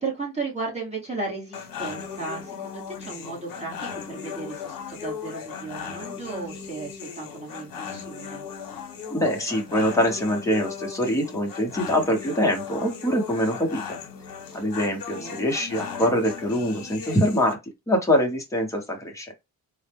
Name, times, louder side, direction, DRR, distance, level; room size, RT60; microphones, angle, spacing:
voice 1, 0.0-8.4 15.1-15.4, right 3 dB, 20° right, 1.1 m, -35 dB
sound 1, 1.5-17.5, left 7 dB, 65° left, 1.0 m, -37 dB
voice 2, 9.1-14.0 14.5-17.6 17.9-19.3, equal, 10° left, 0.8 m, -24 dB
4.0 x 2.0 x 3.3 m
cardioid pair, 175°, 36 cm